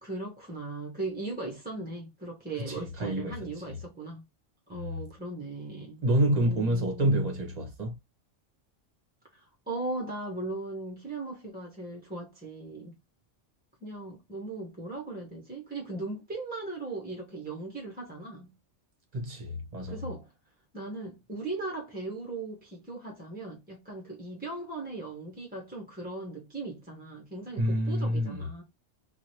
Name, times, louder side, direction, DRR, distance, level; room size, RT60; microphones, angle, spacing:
voice 1, 0.0-4.2 4.7-7.2 9.3-12.9 13.8-18.5 19.9-20.3 20.7-28.6, right 2 dB, 10° right, 0.6 m, -38 dB
voice 2, 2.6-3.3 3.7-3.8 4.7-4.9 6.0-7.9 19.1-20.0 27.6-28.4, right 1 dB, 35° right, 1.0 m, -28 dB
3.0 x 2.4 x 2.7 m
omnidirectional pair, 1.3 m